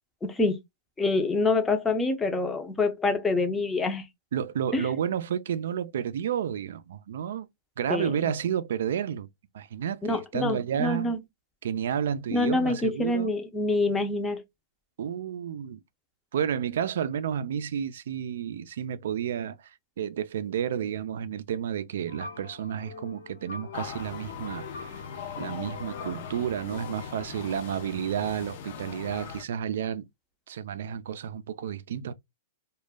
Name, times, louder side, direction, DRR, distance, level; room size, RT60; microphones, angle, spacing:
voice 1, 0.2-0.6 1.0-4.0 4.7-4.9 7.9-8.3 10.0-11.2 12.3-14.4, left 2 dB, 10° left, 0.5 m, -26 dB
voice 2, 4.3-7.5 7.8-9.3 9.5-11.1 11.6-13.3 15.0-15.8 16.3-19.7 20.0-24.9 25.4-30.1 30.5-32.1, right 9 dB, 75° right, 0.3 m, -31 dB
sound 1, 22.1-27.3, left 5 dB, 85° left, 1.0 m, -43 dB
sound 2, 23.7-29.4, left 7 dB, 65° left, 0.6 m, -41 dB
2.2 x 2.0 x 3.3 m
hypercardioid pair, 140°, 0 cm